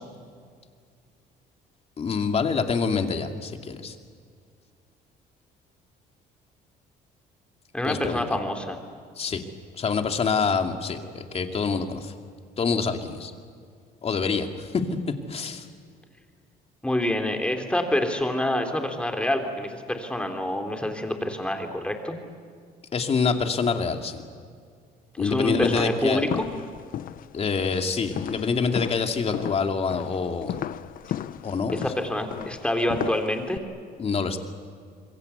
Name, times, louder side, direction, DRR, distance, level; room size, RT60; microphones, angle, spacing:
voice 1, 2.0-3.9 7.8-8.2 9.2-9.4 9.8-12.1 12.6-13.3 14.0-14.7 15.3-15.6 22.9-24.2 25.2-26.2 27.3-30.6 31.4-31.8 34.0-34.4, left 5 dB, 35° left, 5 dB, 2.5 m, -26 dB
voice 2, 7.7-8.8 16.8-22.2 25.1-26.5 31.7-33.6, left 1 dB, 5° left, 4 dB, 3.5 m, -27 dB
sound 1, 25.6-33.6, left 10 dB, 55° left, 0.8 m, -35 dB
27.0 x 22.5 x 8.3 m, 2.1 s
cardioid pair, 110°, 17 cm